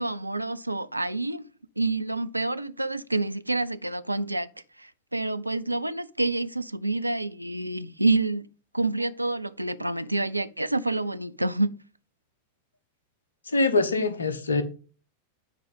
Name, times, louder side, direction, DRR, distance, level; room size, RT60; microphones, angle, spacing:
voice 1, 0.0-1.5 1.8-4.5 4.8-8.5 8.7-11.7, right 2 dB, 85° right, 0.5 m, -28 dB
voice 2, 13.5-14.6, left 3 dB, 75° left, 1.1 m, -24 dB
9.5 x 4.7 x 5.3 m
figure-of-eight pair, 90°, 0 cm